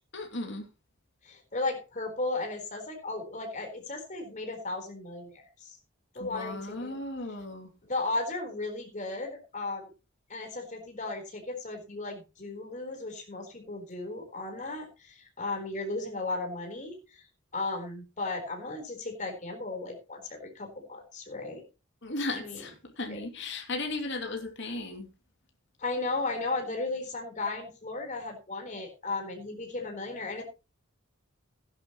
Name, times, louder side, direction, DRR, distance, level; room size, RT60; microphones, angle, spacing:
voice 1, 0.1-0.7 6.2-7.7 22.0-25.1, left 2 dB, 60° left, 2.8 m, -36 dB
voice 2, 1.2-5.8 6.1-6.9 7.9-9.9 10.3-17.2 17.5-21.6 22.3-22.6 23.1-23.2 25.8-30.4, left 2 dB, 35° left, 4.1 m, -35 dB
16.5 x 10.5 x 3.1 m
head